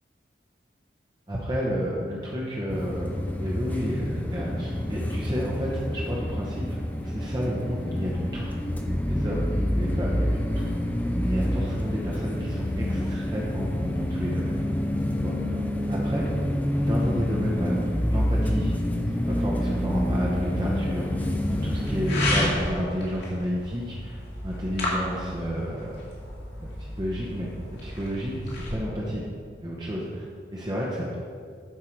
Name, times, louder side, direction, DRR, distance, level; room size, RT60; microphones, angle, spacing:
voice 1, 1.3-6.7 7.0-8.5 9.1-10.7 11.2-14.6 15.2-15.5 15.9-16.5 16.8-18.7 19.1-24.2 24.4-26.0 26.6-29.2 29.6-30.3 30.5-31.2, equal, 25° right, -4 dB, 0.9 m, -31 dB
sound 1, 2.7-22.5, equal, 10° left, 0.5 m, -27 dB
sound 2, 21.5-28.8, left 1 dB, 65° left, 2.2 m, -33 dB
11.0 x 4.8 x 4.6 m, 2.1 s
head